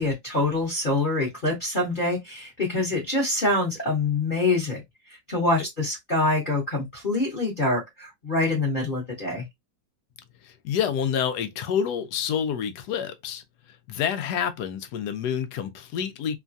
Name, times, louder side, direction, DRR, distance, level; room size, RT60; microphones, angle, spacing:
voice 1, 0.0-4.8 5.1-9.4, left 2 dB, 35° left, 1.0 m, -25 dB
voice 2, 10.4-13.4 13.9-16.4, left 8 dB, 70° left, 1.0 m, -28 dB
3.1 x 2.2 x 2.5 m
omnidirectional pair, 2.0 m